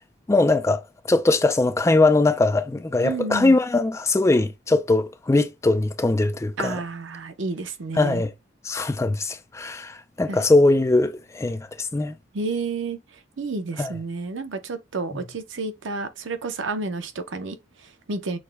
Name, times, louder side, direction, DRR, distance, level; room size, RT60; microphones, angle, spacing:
voice 1, 0.3-0.8 1.1-6.8 8.0-8.3 8.6-12.1 13.8-13.9, left 2 dB, 15° left, 0.3 m, -21 dB
voice 2, 3.0-3.6 6.6-8.2 10.3-10.4 12.3-13.0 13.4-18.4, right 3 dB, 90° right, 0.7 m, -30 dB
6.3 x 2.2 x 3.3 m
head